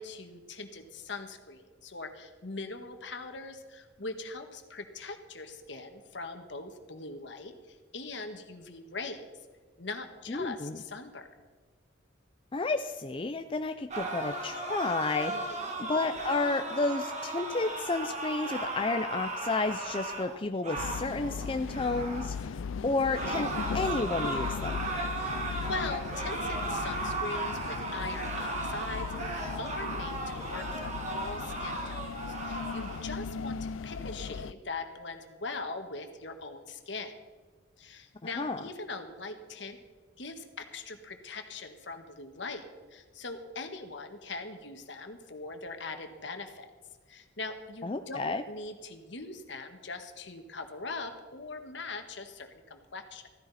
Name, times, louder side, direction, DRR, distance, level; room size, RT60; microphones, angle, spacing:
voice 1, 0.0-9.2 9.8-11.3 15.3-15.7 25.2-37.1 37.8-39.8 40.2-46.7 47.1-53.3, left 3 dB, 65° left, 6 dB, 1.6 m, -41 dB
voice 2, 10.3-10.8 12.5-24.9 38.4-38.6 47.8-48.4, left 3 dB, 25° left, 7 dB, 0.5 m, -31 dB
sound 1, 13.9-22.4 23.1-33.0, right 2 dB, 35° right, 1.7 m, -36 dB
sound 2, 20.8-34.5, left 5 dB, 85° left, 0.4 m, -38 dB
15.0 x 15.0 x 4.2 m, 1.5 s
head